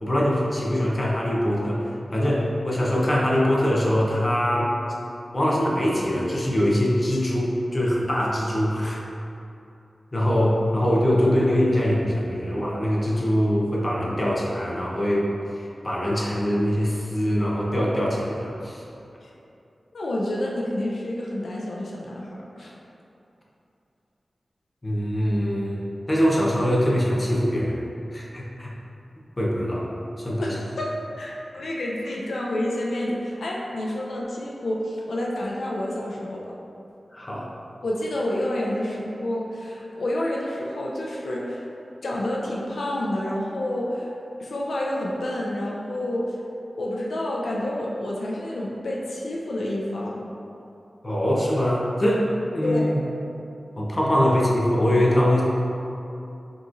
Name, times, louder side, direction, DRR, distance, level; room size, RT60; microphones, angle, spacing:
voice 1, 0.0-1.8 2.1-4.7 5.3-9.0 10.1-15.3 15.8-18.8 24.8-27.8 28.1-28.7 29.4-29.9 30.2-30.6 37.1-37.5 51.0-53.0 53.8-55.4, equal, 30° left, -4 dB, 0.7 m, -23 dB
voice 2, 19.9-22.3 22.6-22.7 30.4-36.5 37.8-41.6 42.0-44.1 44.4-46.4 46.8-50.2 52.6-52.9, left 1 dB, 85° left, -3 dB, 0.5 m, -29 dB
5.0 x 3.0 x 2.5 m, 2.8 s
wide cardioid pair, 95°, 0 cm